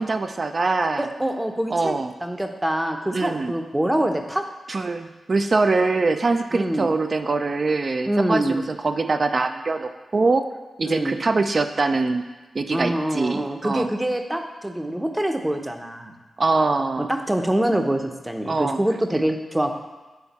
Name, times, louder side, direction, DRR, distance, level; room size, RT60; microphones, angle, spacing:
voice 1, 0.0-1.1 1.7-2.1 3.1-3.5 4.7-10.5 10.8-12.2 12.5-13.9 16.4-17.1 18.5-18.8, right 3 dB, 50° right, 7 dB, 0.4 m, -23 dB
voice 2, 1.0-2.0 2.2-4.4 6.5-6.9 8.1-8.6 10.8-11.2 12.7-16.1 17.0-19.8, right 1 dB, 15° right, 5 dB, 0.7 m, -25 dB
7.8 x 3.5 x 4.1 m, 1.2 s
cardioid pair, 50°, 0 cm